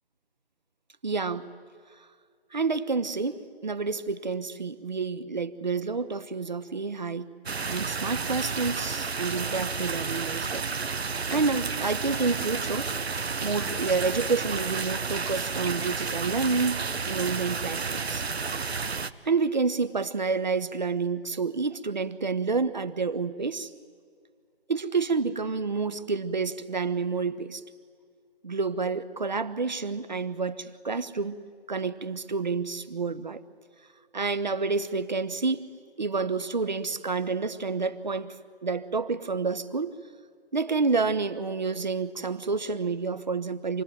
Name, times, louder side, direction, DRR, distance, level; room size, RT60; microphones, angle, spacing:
voice 1, 1.0-1.5 2.5-7.3 7.7-10.6 11.3-12.9 13.4-18.2 19.2-23.7 24.7-27.6 28.4-31.4 31.7-33.4 34.1-35.7 36.0-38.4 38.6-39.9 40.5-43.8, right 4 dB, 45° right, 14 dB, 1.0 m, -29 dB
sound 1, 7.5-19.1, right 4 dB, 85° right, 1.1 m, -31 dB
27.5 x 20.5 x 9.3 m, 2.2 s
figure-of-eight pair, 175°, 31 cm